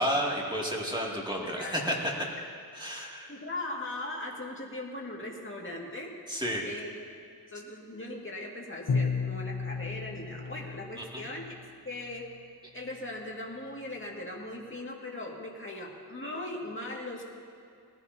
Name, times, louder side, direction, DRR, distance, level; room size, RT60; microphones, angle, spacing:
voice 1, 0.0-2.1 2.7-3.3 6.3-6.7 11.0-11.2, equal, 10° right, -3 dB, 2.5 m, -31 dB
voice 2, 1.4-1.8 3.3-6.1 6.6-6.9 7.5-11.6 11.8-12.3 12.7-17.2, left 2 dB, 30° left, -2 dB, 2.2 m, -39 dB
Bowed string instrument, 8.9-11.7, left 5 dB, 75° left, 0.8 m, -33 dB
19.5 x 15.5 x 2.9 m, 2.3 s
wide cardioid pair, 65°, 39 cm